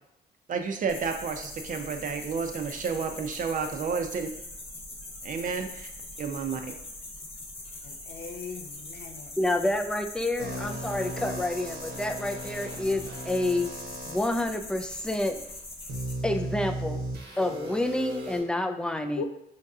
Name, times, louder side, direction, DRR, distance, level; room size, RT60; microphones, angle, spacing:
voice 1, 0.5-4.3 5.2-5.9 6.2-6.7, right 5 dB, 50° right, 5 dB, 0.5 m, -31 dB
sound 1, 0.9-16.1, left 2 dB, 35° left, 0.8 m, -42 dB
voice 2, 7.8-9.3 19.2-19.3, left 5 dB, 65° left, 5 dB, 0.5 m, -39 dB
voice 3, 9.4-13.7 14.1-15.4 16.2-17.0 17.4-19.2, left 1 dB, 5° left, 6 dB, 0.3 m, -28 dB
sound 2, 10.4-14.2 14.9-15.0 15.9-18.4, right 1 dB, 70° right, 0.9 m, -36 dB
4.5 x 2.7 x 2.3 m, 0.78 s
supercardioid pair, 70°, 17 cm